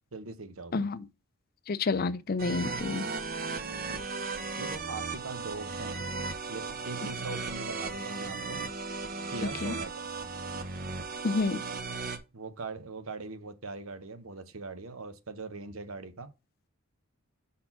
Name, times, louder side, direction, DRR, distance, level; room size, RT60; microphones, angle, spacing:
voice 1, 0.1-0.9 3.9-4.0 4.6-6.1 6.5-8.6 9.3-9.9 12.3-16.3, right 3 dB, 70° right, 1.0 m, -41 dB
voice 2, 1.7-3.1 9.6-9.7 11.2-11.6, left 3 dB, 45° left, 0.5 m, -29 dB
sound 1, 2.4-12.2, right 4 dB, 40° right, 0.8 m, -36 dB
5.6 x 4.3 x 5.8 m
head